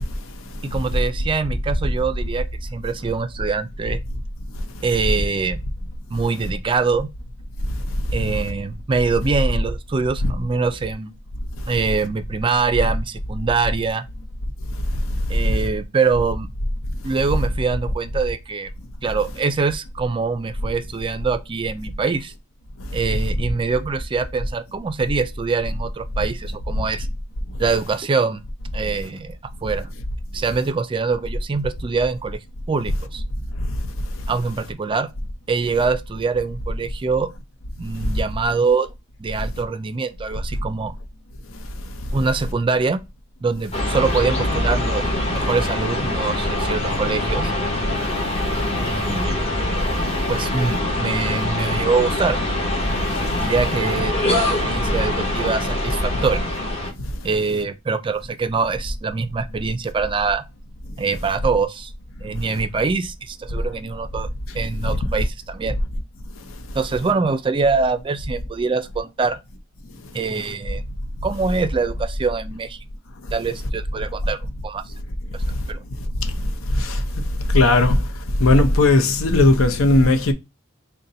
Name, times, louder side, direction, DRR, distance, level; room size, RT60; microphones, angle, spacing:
voice 1, 0.6-2.4 2.7-4.0 4.8-5.6 6.1-7.1 8.1-11.1 11.7-14.0 15.3-16.5 17.0-18.7 19.0-22.3 22.9-27.1 27.6-28.4 28.7-29.3 29.6-29.9 30.3-32.4 32.7-33.2 34.3-35.1 35.5-37.3 37.8-38.9 39.2-40.9 42.1-43.0 43.4-45.0 45.3-47.5 48.8-49.4 50.3-52.4 53.3-56.5 57.2-60.4 61.0-61.9 62.2-64.3 64.5-65.8 66.7-69.4 70.1-70.8 71.2-72.8 73.3-74.4 74.6-74.8 75.7-75.8, right 4 dB, 25° right, 0.3 m, -24 dB
sound 1, 43.7-56.9, left 1 dB, 30° left, 1.0 m, -24 dB
voice 2, 77.5-78.0 78.4-80.3, left 2 dB, 85° left, 0.6 m, -15 dB
4.0 x 2.2 x 3.8 m
head